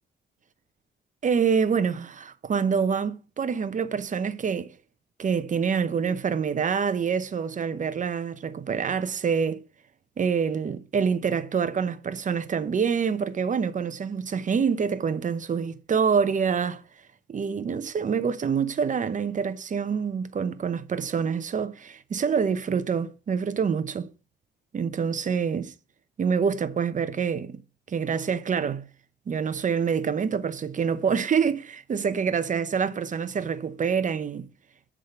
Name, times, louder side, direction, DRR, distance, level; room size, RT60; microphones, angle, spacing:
voice 1, 1.2-4.7 5.2-9.6 10.2-16.8 17.3-24.1 24.7-25.7 26.2-27.6 27.9-28.9 29.3-34.5, right 6 dB, 40° right, 0.8 m, -26 dB
8.1 x 3.8 x 6.6 m
cardioid pair, 90°, 20 cm